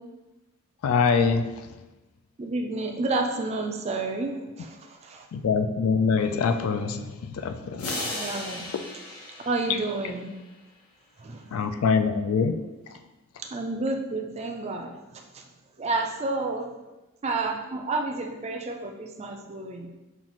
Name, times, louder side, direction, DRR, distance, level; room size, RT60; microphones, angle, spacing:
voice 1, 0.8-1.5 5.3-8.0 11.5-12.6, left 5 dB, 70° left, 8 dB, 0.3 m, -24 dB
voice 2, 2.4-5.3 8.1-8.7 9.5-10.3 11.2-11.5 13.4-15.5 15.8-16.7 17.2-19.9, right 3 dB, 30° right, 3 dB, 0.4 m, -30 dB
sound 1, 7.8-10.5, left 1 dB, 90° left, 1.0 m, -36 dB
5.4 x 2.4 x 3.0 m, 1.1 s
head